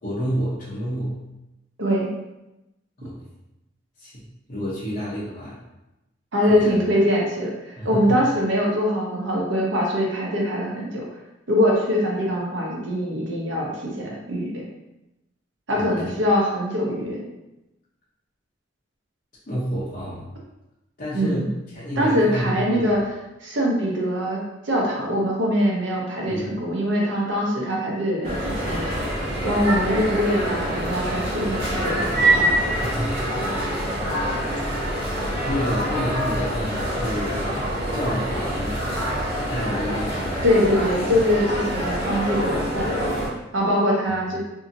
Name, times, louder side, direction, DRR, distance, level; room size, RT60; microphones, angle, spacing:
voice 1, 0.0-1.2 3.0-3.2 4.0-5.6 6.5-6.7 7.8-8.2 15.7-15.9 19.5-20.3 21.0-23.0 26.3-26.6 32.9-33.4 34.1-34.3 35.0-37.4 37.9-38.9 39.5-40.4, equal, 45° left, -9 dB, 0.7 m, -29 dB
voice 2, 6.3-11.0 11.5-14.6 15.7-17.2 21.1-21.4 22.0-23.0 23.4-24.4 24.6-29.1 29.4-32.5 40.4-44.4, equal, 90° right, -2 dB, 0.8 m, -23 dB
sound 1, 28.2-43.3, right 1 dB, 55° right, 1.1 m, -25 dB
2.7 x 2.6 x 2.6 m, 0.96 s
head